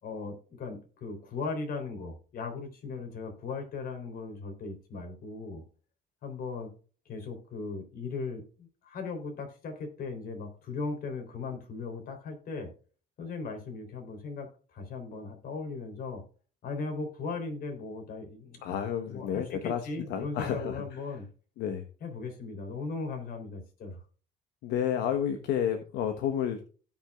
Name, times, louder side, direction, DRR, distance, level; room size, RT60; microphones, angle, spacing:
voice 1, 0.0-5.6 6.2-6.7 7.0-12.7 13.2-16.2 16.6-18.6 19.1-21.3 22.0-24.0, left 4 dB, 60° left, 4 dB, 3.5 m, -38 dB
voice 2, 18.6-21.0 21.6-21.8 24.6-26.6, left 9 dB, 80° left, 6 dB, 1.2 m, -31 dB
17.0 x 6.2 x 2.4 m, 0.39 s
cardioid pair, 110°, 17 cm